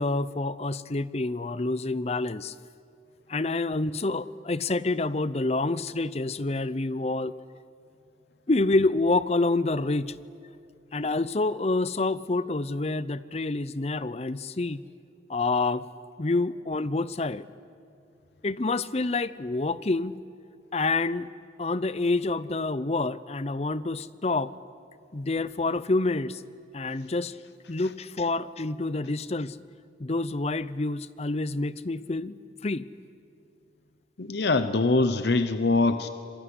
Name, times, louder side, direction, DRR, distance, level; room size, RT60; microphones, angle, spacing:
voice 1, 0.0-2.5 3.3-7.3 8.5-10.2 10.9-14.8 15.3-15.9 16.2-17.5 18.4-20.1 20.7-21.3 21.6-24.5 25.1-26.4 26.7-27.4 27.7-29.6 30.0-32.9, left 2 dB, 35° left, 17 dB, 0.6 m, -27 dB
voice 2, 34.2-36.1, left 3 dB, 65° left, 11 dB, 0.9 m, -23 dB
26.5 x 21.0 x 9.8 m, 2.4 s
head